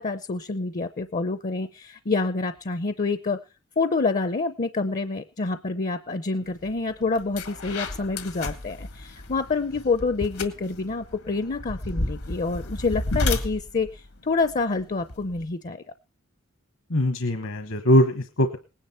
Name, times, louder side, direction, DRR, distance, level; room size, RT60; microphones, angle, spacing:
voice 1, 0.0-3.4 3.8-15.8, left 3 dB, 40° left, 12 dB, 0.6 m, -27 dB
sound 1, 6.6-6.8 7.2-15.4, left 2 dB, 85° left, 1.9 m, -32 dB
voice 2, 16.9-18.6, equal, 70° left, 8 dB, 1.2 m, -21 dB
19.0 x 10.0 x 4.4 m, 0.33 s
head